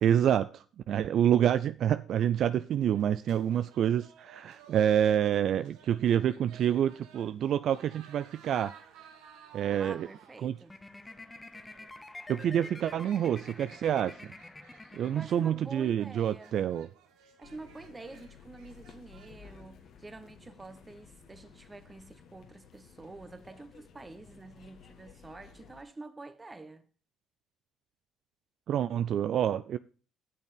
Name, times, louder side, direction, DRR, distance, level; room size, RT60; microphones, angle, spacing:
voice 1, 0.0-8.7 9.5-10.1 10.4-10.5 12.3-14.2 14.9-16.9 28.7-29.8, right 10 dB, 60° right, 0.4 m, -27 dB
sound 1, 2.7-19.6, right 7 dB, 75° right, 1.5 m, -57 dB
voice 2, 9.7-10.7 14.8-16.5 17.4-26.9, right 3 dB, 20° right, 1.3 m, -47 dB
sound 2, 10.7-15.9, left 2 dB, 15° left, 1.0 m, -48 dB
sound 3, 17.4-25.8, left 7 dB, 60° left, 1.6 m, -55 dB
8.5 x 6.6 x 6.6 m
supercardioid pair, 65°, 0 cm